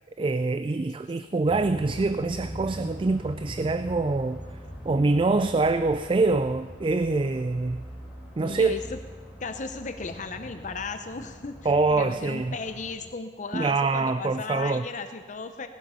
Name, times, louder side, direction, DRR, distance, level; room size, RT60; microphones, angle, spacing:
voice 1, 0.2-4.4 4.9-7.8 8.4-8.7 11.7-12.6 13.5-14.8, right 3 dB, 30° right, 12 dB, 0.4 m, -25 dB
sound 1, 1.5-12.9, equal, 10° right, 3.1 m, -42 dB
voice 2, 5.0-5.5 8.4-9.0 9.4-15.7, left 4 dB, 45° left, 8 dB, 0.7 m, -36 dB
18.0 x 12.0 x 5.6 m, 1.5 s
head